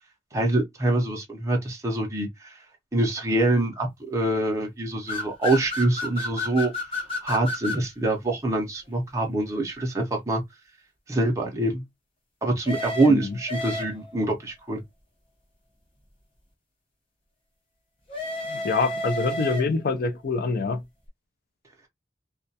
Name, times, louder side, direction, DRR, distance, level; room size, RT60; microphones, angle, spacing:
voice 1, 0.3-2.5 2.9-6.7 7.2-10.4 11.1-11.8 12.4-14.8, right 2 dB, 15° right, 0.5 m, -25 dB
sound 1, 5.1-7.9 12.6-14.2 18.1-20.0, left 1 dB, 30° left, 0.8 m, -31 dB
voice 2, 18.5-20.8, left 4 dB, 50° left, 0.4 m, -25 dB
2.3 x 2.2 x 2.6 m
head